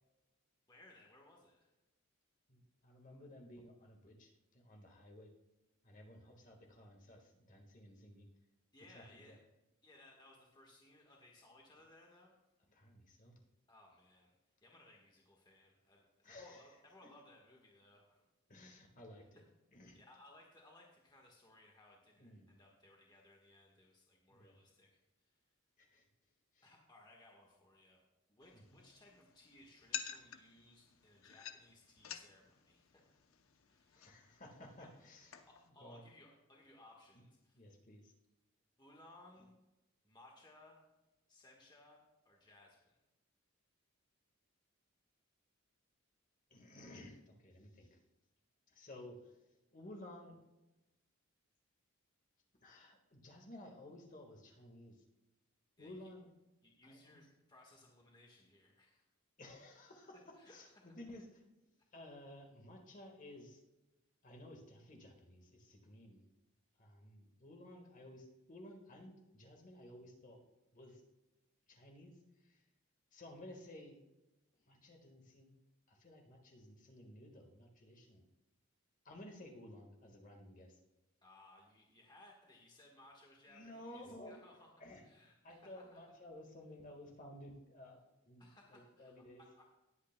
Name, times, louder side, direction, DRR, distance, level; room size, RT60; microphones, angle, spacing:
voice 1, 0.7-1.7 8.7-9.4 9.8-12.4 13.7-14.3 14.6-18.2 19.3-19.4 19.9-25.4 26.6-28.0 28.3-33.1 33.7-34.1 34.8-34.9 35.4-37.6 38.8-39.5 40.0-40.8 41.3-42.9 55.8-56.1 56.6-59.1 60.3-61.0 81.2-84.7 85.0-86.0 88.4-89.7, left 1 dB, 20° left, -1 dB, 1.4 m, -63 dB
voice 2, 2.5-5.3 5.8-8.3 8.9-9.4 12.7-13.4 16.2-16.7 18.5-19.4 19.7-20.0 22.2-22.5 24.3-24.5 25.8-26.0 26.5-26.7 28.5-28.8 33.9-36.0 37.5-38.1 46.5-48.0 48.7-49.4 49.7-50.4 52.6-55.0 55.8-56.3 56.8-57.2 59.4-61.4 61.9-63.6 64.2-66.3 66.8-70.4 70.7-71.0 71.7-72.6 73.1-74.0 74.7-75.6 75.9-78.2 79.0-80.8 83.5-84.4 84.8-85.0 85.4-89.4, left 1 dB, 40° left, 2 dB, 1.6 m, -55 dB
sound 1, 28.4-35.7, left 9 dB, 75° left, 0.7 m, -51 dB
19.5 x 8.4 x 2.2 m, 1.0 s
head